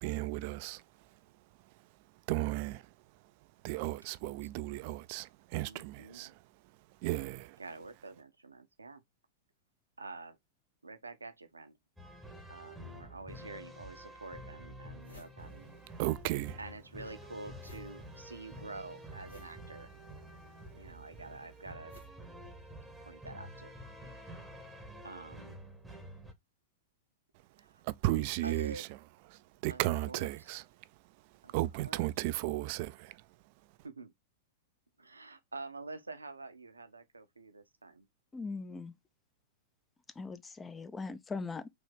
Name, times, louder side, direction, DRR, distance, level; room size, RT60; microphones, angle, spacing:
voice 1, 0.0-0.8 2.3-2.8 3.6-6.3 7.0-7.6 16.0-16.6 27.8-28.9 29.2-30.7 31.5-33.2, right 17 dB, 45° right, 0.3 m, -34 dB
voice 2, 5.6-6.4 7.6-9.0 10.0-10.4 10.8-11.8 12.5-15.8 16.6-19.9 20.8-21.9 23.0-23.7 25.0-25.6 27.6-27.8 28.4-28.8 29.7-30.5 31.4-31.5 31.8-32.0 33.8-34.1 35.0-38.1, right 3 dB, 85° right, 0.7 m, -47 dB
sound 1, 12.0-26.3, equal, 5° right, 1.0 m, -49 dB
sound 2, 13.8-13.9 14.4-14.5 14.7-16.3 16.5-23.1, left 2 dB, 80° left, 2.0 m, -61 dB
voice 3, 38.3-38.9 40.1-41.7, left 4 dB, 15° left, 0.5 m, -40 dB
3.9 x 2.8 x 3.4 m
figure-of-eight pair, 95°, 0 cm